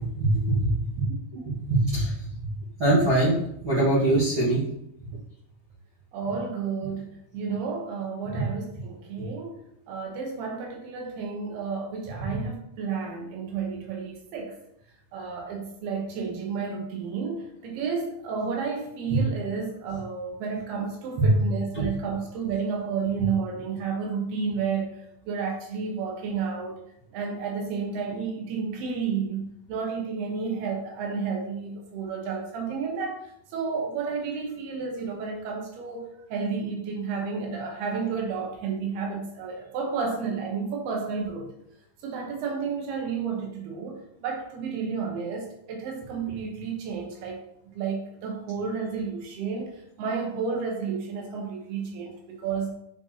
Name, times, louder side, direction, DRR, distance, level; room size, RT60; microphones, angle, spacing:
voice 1, 0.0-0.7 1.7-2.3 2.8-3.3 3.6-4.6 8.3-8.4 12.2-12.4 21.2-21.3 21.7-21.8, right 2 dB, 55° right, -9 dB, 1.4 m, -22 dB
voice 2, 6.1-9.6 9.9-14.6 15.1-26.8 27.1-41.5 42.0-52.7, right 5 dB, 75° right, 1 dB, 3.0 m, -31 dB
9.2 x 4.5 x 2.8 m, 0.77 s
omnidirectional pair, 4.8 m